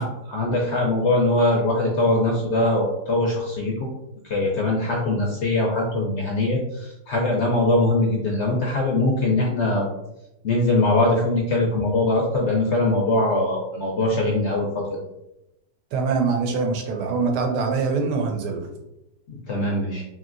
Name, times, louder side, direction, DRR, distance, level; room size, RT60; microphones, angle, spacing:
voice 1, 0.0-3.9 4.2-9.9 10.4-15.0 19.3-20.1, left 2 dB, 70° left, -1 dB, 0.6 m, -22 dB
voice 2, 15.9-18.6, right 4 dB, 90° right, 3 dB, 1.2 m, -23 dB
3.1 x 2.7 x 2.5 m, 0.89 s
omnidirectional pair, 1.7 m